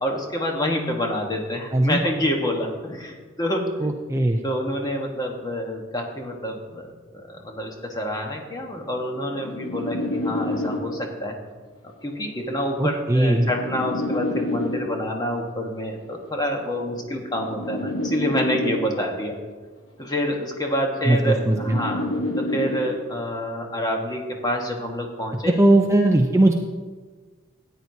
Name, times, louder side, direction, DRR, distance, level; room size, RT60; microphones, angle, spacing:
voice 1, 0.0-3.9 4.4-6.8 7.1-11.3 11.8-19.4 20.0-22.0 22.4-25.5, equal, 20° left, 1 dB, 1.3 m, -27 dB
voice 2, 3.8-4.4 12.8-13.5 21.1-21.8 25.5-26.5, right 1 dB, 15° right, 3 dB, 0.5 m, -19 dB
sound 1, 8.8-11.2 12.3-15.2 16.3-19.2 20.3-23.2, left 1 dB, 75° left, 1.2 m, -29 dB
13.5 x 9.3 x 2.8 m, 1.4 s
head